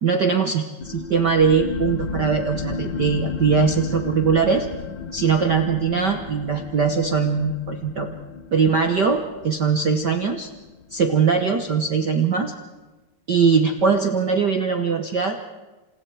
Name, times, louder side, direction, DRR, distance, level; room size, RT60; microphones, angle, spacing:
voice 1, 0.0-4.7 5.1-8.1 8.5-10.5 10.9-12.5 13.3-15.4, right 5 dB, 70° right, 6 dB, 1.0 m, -21 dB
sound 1, 0.8-11.9, left 5 dB, 75° left, 1.1 m, -34 dB
28.5 x 27.5 x 4.8 m, 1.2 s
omnidirectional pair, 3.8 m